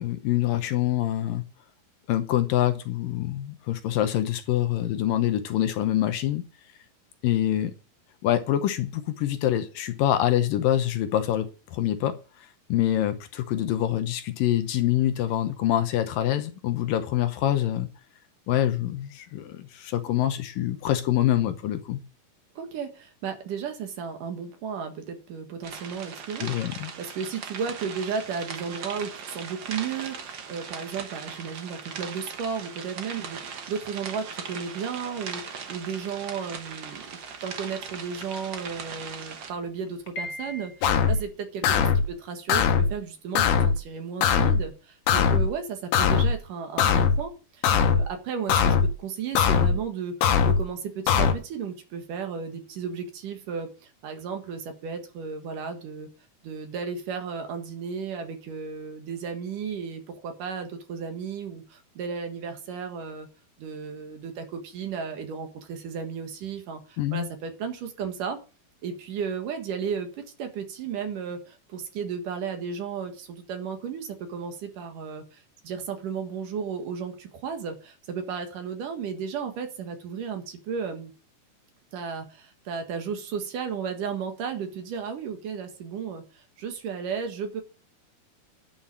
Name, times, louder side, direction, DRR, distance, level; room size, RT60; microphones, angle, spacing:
voice 1, 0.0-1.4 2.1-6.4 7.2-7.7 8.2-12.2 12.7-17.9 18.5-22.0 26.4-26.9 67.0-67.3, left 12 dB, 75° left, 2.4 m, -25 dB
voice 2, 22.6-56.1 56.4-63.3 63.6-68.4 68.8-70.1 70.4-81.1 81.9-87.6, right 6 dB, 65° right, 3.0 m, -34 dB
sound 1, 25.6-39.5, right 6 dB, 85° right, 1.0 m, -39 dB
sound 2, 36.9-37.4 38.2-38.3 38.6-38.7 39.1-39.2 39.8-41.2, left 2 dB, 35° left, 2.5 m, -38 dB
sound 3, 40.8-41.2 41.6-42.1 42.5-42.9 43.3-43.8 44.2-44.6 45.1-45.5 45.9-46.3 46.8-47.2 47.6-48.1 48.5-48.9 49.3-49.8 50.2-50.6 51.1-51.3, left 7 dB, 90° left, 3.2 m, -21 dB
10.5 x 5.8 x 8.6 m
omnidirectional pair, 4.4 m